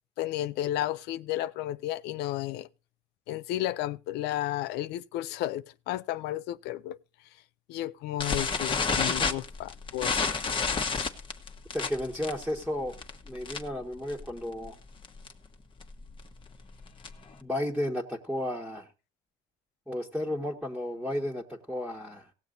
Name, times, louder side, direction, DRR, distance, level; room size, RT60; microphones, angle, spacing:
voice 1, 0.2-2.7 3.3-7.0 7.7-10.2, left 14 dB, 85° left, 0.5 m, -33 dB
sound 1, 8.2-13.8 14.1-14.4 14.6-14.7 15.0-15.3 15.8-17.3, left 5 dB, 30° left, 1.3 m, -30 dB
voice 2, 11.7-13.0 13.2-14.8 17.4-18.9 19.9-22.3, left 1 dB, 5° right, 1.5 m, -33 dB
17.5 x 7.3 x 3.9 m
cardioid pair, 110°, 17 cm